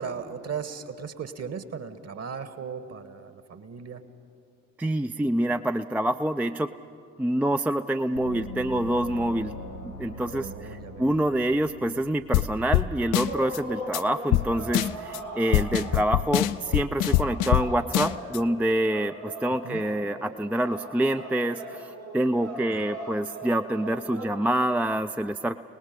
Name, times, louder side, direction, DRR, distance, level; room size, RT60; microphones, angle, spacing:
voice 1, 0.0-4.0 10.3-11.1 15.9-16.0 19.6-19.8 22.7-22.8, right 6 dB, 40° right, 11 dB, 1.5 m, -37 dB
voice 2, 4.8-6.7 7.2-9.6 9.8-25.6, right 1 dB, 5° right, 8 dB, 0.5 m, -26 dB
Gong, 8.1-13.4, left 1 dB, 90° left, 2.7 m, -41 dB
sound 1, 12.3-12.5 12.7-12.9 13.1-13.6 13.9-14.0 14.3-14.5 14.7-15.2 15.5-17.7 17.9-18.4, left 15 dB, 55° left, 0.6 m, -23 dB
sound 2, 13.2-24.2, right 1 dB, 85° right, 4.9 m, -40 dB
29.5 x 19.5 x 5.3 m, 2.4 s
figure-of-eight pair, 40°, 39 cm